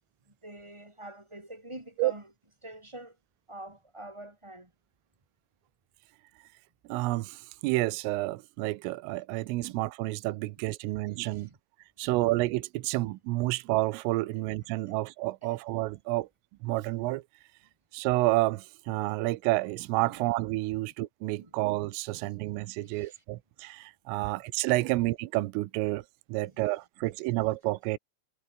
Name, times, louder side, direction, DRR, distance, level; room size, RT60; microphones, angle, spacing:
voice 1, 0.4-2.3 2.6-3.1 3.5-4.7 11.2-11.5 12.0-12.1 14.3-14.4 14.9-15.0 21.4-21.5 22.8-23.2, right 1 dB, 10° right, 2.1 m, -45 dB
voice 2, 6.9-11.5 12.0-16.3 16.6-17.2 17.9-26.0 26.3-28.0, right 20 dB, 85° right, 3.5 m, -29 dB
omnidirectional pair, 5.8 m